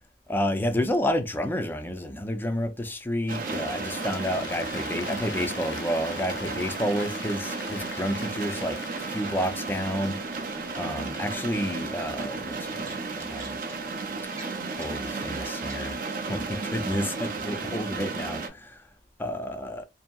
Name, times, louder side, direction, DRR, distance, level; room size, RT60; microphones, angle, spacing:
voice 1, 0.3-8.8 9.1-13.6 14.8-16.0 16.3-18.8 19.2-19.8, equal, 10° left, 0.3 m, -30 dB
sound 1, 3.3-18.5, right 4 dB, 50° right, 0.5 m, -33 dB
Applause, 3.4-10.1, left 7 dB, 85° left, 0.4 m, -42 dB
sound 2, 10.6-11.2 11.5-11.8 12.1-12.3 12.8-13.8 14.3-15.0 15.4-15.8, right 2 dB, 15° right, 0.8 m, -47 dB
2.8 x 2.6 x 2.2 m
head